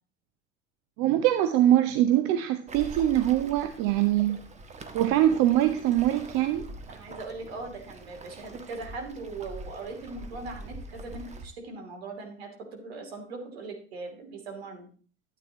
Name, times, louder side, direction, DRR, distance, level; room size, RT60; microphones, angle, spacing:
voice 1, 1.0-4.4 4.9-6.7, right 12 dB, 45° right, 9 dB, 0.8 m, -23 dB
Waves surf, 2.7-11.5, right 2 dB, 20° right, 1.4 m, -44 dB
voice 2, 6.9-14.9, right 3 dB, 65° right, 3 dB, 3.0 m, -40 dB
12.5 x 8.8 x 3.0 m, 0.40 s
figure-of-eight pair, 75°, 34 cm